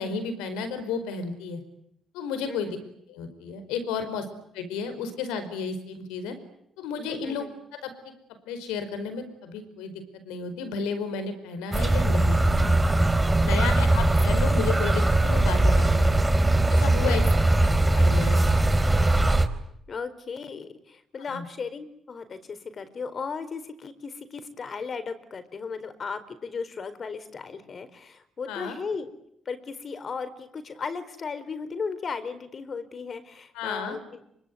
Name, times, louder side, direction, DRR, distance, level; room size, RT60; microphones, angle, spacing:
voice 1, 0.0-1.6 2.1-2.8 3.1-4.3 4.5-6.3 6.8-7.4 7.7-8.1 8.5-9.9 10.2-12.8 13.4-16.3 16.7-17.2 17.9-18.4 21.2-21.4 28.5-28.8 33.5-34.0, left 5 dB, 90° left, 10 dB, 4.9 m, -32 dB
sound 1, 11.7-19.5, right 2 dB, 20° right, 4.2 m, -21 dB
voice 2, 17.0-17.5 19.9-29.1 29.4-34.3, left 5 dB, 50° left, 12 dB, 4.5 m, -36 dB
25.5 x 25.0 x 9.4 m, 0.75 s
supercardioid pair, 55°, 0 cm